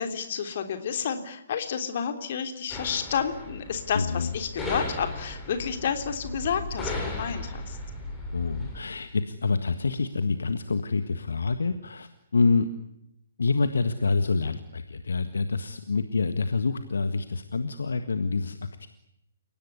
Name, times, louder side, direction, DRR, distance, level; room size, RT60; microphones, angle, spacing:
voice 1, 0.0-7.8, left 7 dB, 45° left, 7 dB, 3.3 m, -30 dB
sound 1, 2.7-8.8, left 1 dB, 10° left, 6.9 m, -36 dB
voice 2, 3.9-4.3 8.3-12.7 13.4-18.9, left 4 dB, 60° left, 10 dB, 1.6 m, -27 dB
30.0 x 17.5 x 9.7 m, 0.83 s
figure-of-eight pair, 130°, 0 cm